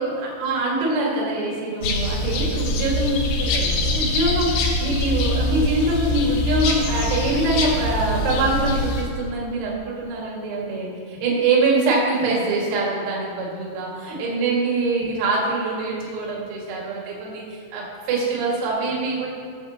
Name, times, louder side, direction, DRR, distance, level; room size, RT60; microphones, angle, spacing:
voice 1, 0.0-4.5 4.8-19.3, right 2 dB, 85° right, -4 dB, 4.8 m, -24 dB
sound 1, 1.8-9.0, left 2 dB, 70° left, 3.1 m, -23 dB
22.5 x 7.5 x 2.9 m, 2.1 s
omnidirectional pair, 6.0 m